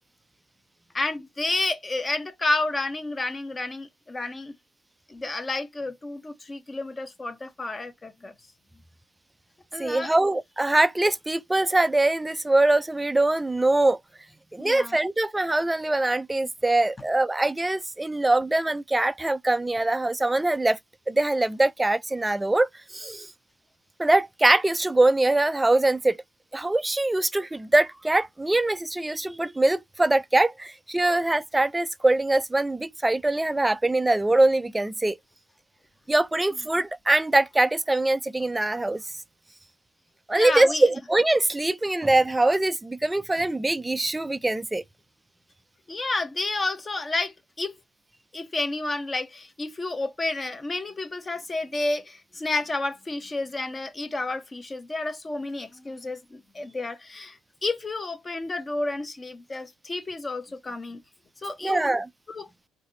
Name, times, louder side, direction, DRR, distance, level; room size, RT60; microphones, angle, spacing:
voice 1, 0.9-4.6 5.1-8.3 9.7-10.2 14.6-15.0 40.3-40.9 45.9-47.8 48.3-61.0 61.4-62.0 62.3-62.5, left 2 dB, 25° left, 1.0 m, -30 dB
voice 2, 9.8-14.0 14.5-20.8 21.1-23.3 24.0-26.2 26.5-35.2 36.1-39.0 40.3-44.8 61.6-62.1, right 2 dB, 15° right, 0.5 m, -23 dB
4.0 x 2.7 x 3.9 m
hypercardioid pair, 60°, 0 cm